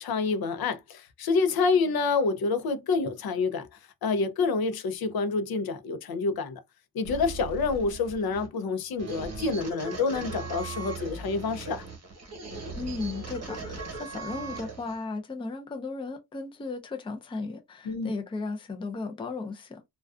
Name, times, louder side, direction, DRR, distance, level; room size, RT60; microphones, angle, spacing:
voice 1, 0.0-3.7 4.0-6.6 6.9-11.8 17.9-18.1, left 4 dB, 70° left, 0.5 m, -27 dB
sound 1, 7.0-15.0, right 3 dB, 40° right, 1.0 m, -39 dB
voice 2, 12.8-19.8, left 3 dB, 15° left, 0.4 m, -35 dB
2.4 x 2.2 x 2.3 m
wide cardioid pair, 135°, 38 cm